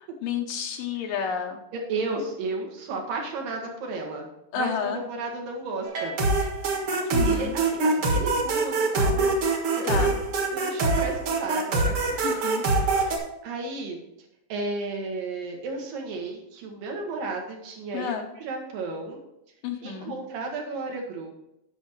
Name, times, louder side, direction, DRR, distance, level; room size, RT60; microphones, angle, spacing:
voice 1, 0.2-1.6 4.5-5.0 7.1-7.5 9.8-10.2 12.2-12.6 17.9-18.3 19.6-20.1, left 7 dB, 80° left, 2 dB, 2.5 m, -30 dB
voice 2, 1.7-4.3 4.5-6.2 6.9-9.3 9.7-10.1 10.5-12.4 13.4-14.0 14.5-19.2 19.8-21.3, right 3 dB, 75° right, 1 dB, 3.5 m, -33 dB
sound 1, 5.8-13.2, right 3 dB, 50° right, 2.0 m, -24 dB
10.5 x 6.3 x 4.7 m, 0.84 s
omnidirectional pair, 4.0 m